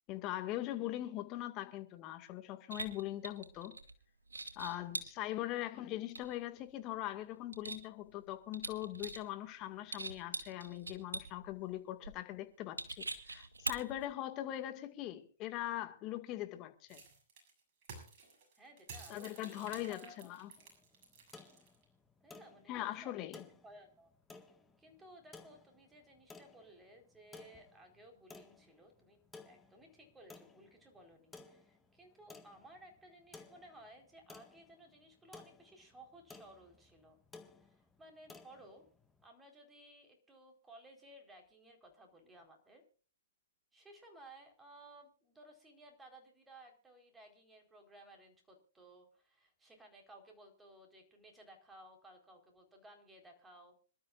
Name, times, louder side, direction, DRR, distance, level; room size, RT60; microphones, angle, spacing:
voice 1, 0.1-3.7 4.6-17.0 19.1-20.5 22.7-23.5, left 14 dB, 30° left, 2.0 m, -41 dB
sound 1, 2.7-3.9 4.3-5.1 6.1-6.6 7.0-8.3 8.5-9.3 9.7-11.5 12.0-12.1 12.8-14.1, right 3 dB, 90° right, 2.5 m, -42 dB
sound 2, 16.9-21.8, right 4 dB, 40° right, 7.0 m, -53 dB
voice 2, 18.6-20.3 22.2-24.1 24.8-37.2 37.6-38.8 39.2-42.8 43.7-53.7, right 1 dB, 10° right, 4.4 m, -58 dB
sound 3, 20.6-39.3, left 3 dB, 10° left, 1.7 m, -58 dB
26.5 x 12.5 x 2.6 m
hypercardioid pair, 125°, 0 cm